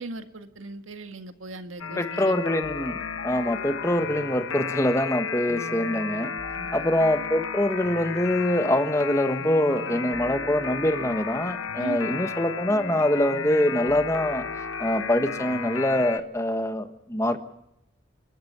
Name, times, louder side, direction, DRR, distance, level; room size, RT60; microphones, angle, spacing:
voice 1, 0.0-2.4 6.5-6.9 11.8-12.2, right 2 dB, 85° right, 7 dB, 1.8 m, -38 dB
sound 1, 1.8-16.2, left 6 dB, 85° left, 1.1 m, -33 dB
voice 2, 2.0-6.3 6.7-14.4 14.8-17.4, left 1 dB, 15° left, 8 dB, 1.3 m, -24 dB
29.0 x 13.0 x 8.1 m, 0.83 s
head